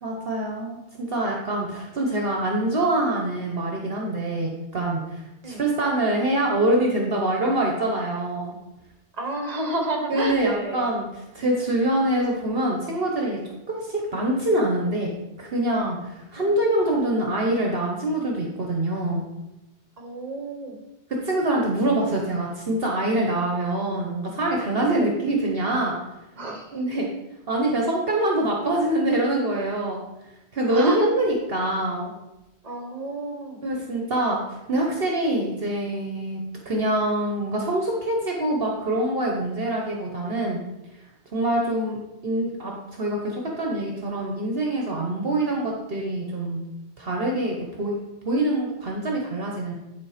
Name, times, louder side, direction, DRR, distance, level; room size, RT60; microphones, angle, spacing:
voice 1, 0.0-8.5 10.1-13.4 13.7-19.2 21.1-26.0 26.7-27.1 27.5-30.0 30.5-32.1 33.6-40.6 41.3-46.6 47.0-48.0 48.2-49.8, right 1 dB, 55° right, -1 dB, 1.2 m, -25 dB
voice 2, 9.2-10.9 16.4-16.7 20.0-20.8 24.9-25.1 26.4-26.8 30.6-31.1 32.6-33.6, right 2 dB, 35° right, 2 dB, 1.4 m, -30 dB
10.5 x 3.9 x 5.0 m, 0.95 s
omnidirectional pair, 1.2 m